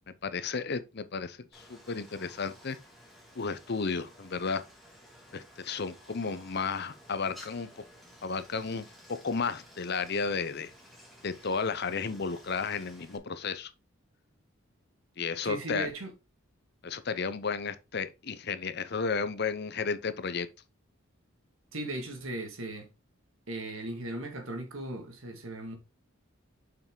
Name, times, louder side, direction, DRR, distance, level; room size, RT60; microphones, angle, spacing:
voice 1, 0.2-2.8 3.4-4.6 5.3-7.7 8.2-10.7 11.2-13.7 15.2-15.9 16.8-20.5, left 5 dB, 50° left, 0.7 m, -33 dB
Stream, 1.5-13.2, equal, ahead, 2.1 m, -54 dB
voice 2, 15.4-16.1 21.7-22.9 23.5-25.8, right 1 dB, 75° right, 1.9 m, -37 dB
6.7 x 5.8 x 3.8 m
head